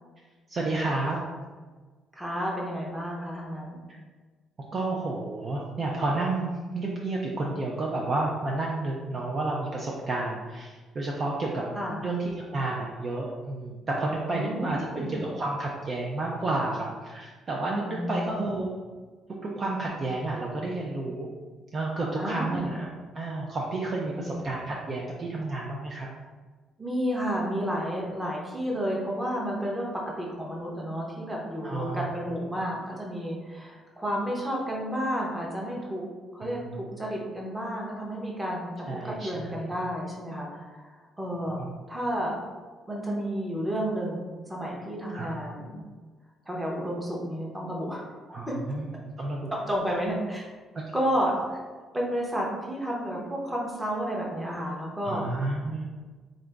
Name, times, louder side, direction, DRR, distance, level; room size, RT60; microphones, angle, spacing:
voice 1, 0.5-1.2 4.7-11.7 12.0-18.7 19.3-21.3 21.7-22.9 23.1-26.1 31.6-32.2 36.4-36.8 38.9-39.7 41.5-41.7 45.1-45.3 48.3-48.9 49.2-49.5 50.7-50.9 55.0-55.8, right 2 dB, 35° right, -2 dB, 0.4 m, -31 dB
voice 2, 2.1-3.8 11.8-12.1 14.3-15.2 17.8-18.5 22.2-22.7 24.1-24.4 26.8-36.0 36.3-41.6 41.9-42.4 42.9-45.8 46.5-48.0 48.5-48.6 49.5-50.5 50.9-51.6 51.9-55.3, equal, 10° right, -3 dB, 0.8 m, -31 dB
3.8 x 2.5 x 3.3 m, 1.4 s
cardioid pair, 140°, 0 cm